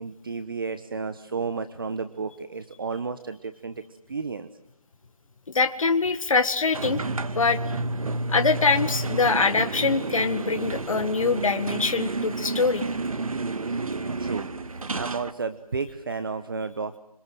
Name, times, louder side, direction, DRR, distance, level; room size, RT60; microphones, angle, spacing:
voice 1, 0.0-4.5 14.0-14.5 14.9-17.0, right 4 dB, 35° right, 11 dB, 1.1 m, -32 dB
voice 2, 5.5-7.0 7.3-7.6 8.3-12.8, left 4 dB, 60° left, 8 dB, 1.9 m, -23 dB
sound 1, 6.7-15.3, right 3 dB, 65° right, 1.8 m, -30 dB
26.5 x 26.5 x 7.8 m, 0.75 s
figure-of-eight pair, 175°, 19 cm